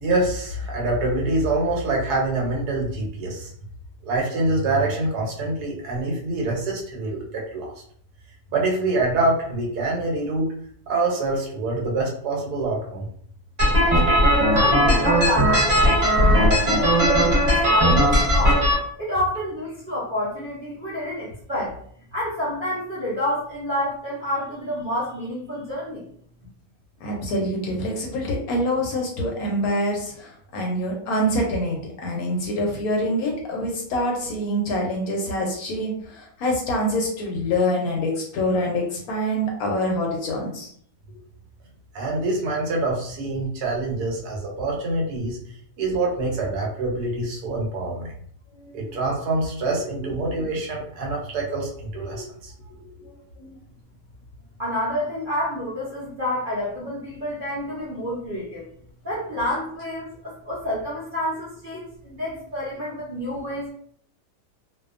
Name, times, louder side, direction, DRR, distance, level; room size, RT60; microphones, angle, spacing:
voice 1, 0.0-3.5 4.0-7.7 8.5-10.5 10.9-13.1 41.9-45.4 45.8-48.1 48.7-52.5, right 2 dB, 70° right, -1 dB, 1.2 m, -25 dB
sound 1, 13.6-18.7, equal, 25° right, 1.1 m, -18 dB
voice 2, 14.5-18.7 19.0-21.8 22.1-26.1 54.6-58.6 59.0-63.7, left 1 dB, 50° right, -9 dB, 0.6 m, -29 dB
voice 3, 27.0-40.7 48.5-48.8 50.0-50.2 53.0-53.6 61.7-61.8 63.3-63.4, equal, 70° left, 0 dB, 1.0 m, -26 dB
2.7 x 2.2 x 2.4 m, 0.62 s
omnidirectional pair, 1.8 m